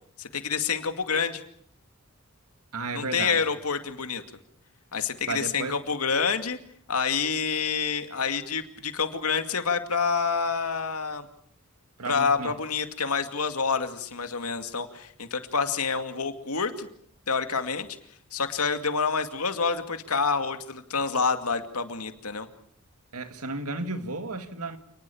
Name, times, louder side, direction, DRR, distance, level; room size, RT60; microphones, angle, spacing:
voice 1, 0.2-1.4 2.9-4.2 4.9-6.6 6.9-11.3 12.1-16.9 17.3-17.9 18.3-22.5, left 5 dB, 85° left, 2.4 m, -28 dB
voice 2, 2.7-3.4 5.3-5.8 12.0-12.6 23.1-24.8, right 3 dB, 85° right, 2.2 m, -33 dB
29.0 x 20.0 x 7.2 m
head